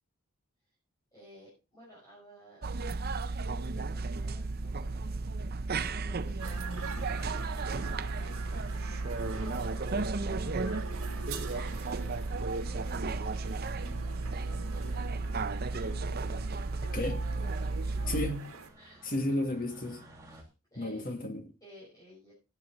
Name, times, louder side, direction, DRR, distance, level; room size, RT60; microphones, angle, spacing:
voice 1, 1.1-2.7 3.7-5.3 5.8-11.8 12.2-15.0 15.7-16.7 17.3-18.4 18.7-19.2 20.3-21.1 21.6-22.3, equal, 15° left, 5.6 m, -57 dB
sound 1, 2.6-18.3, right 3 dB, 45° right, 0.6 m, -34 dB
sound 2, 6.4-18.7, right 5 dB, 65° right, 2.6 m, -45 dB
sound 3, 15.0-20.4, right 1 dB, 15° right, 2.4 m, -61 dB
voice 2, 16.9-17.2 18.1-18.4 19.0-20.0 20.8-21.5, left 1 dB, 40° left, 1.9 m, -32 dB
12.0 x 9.6 x 3.9 m
head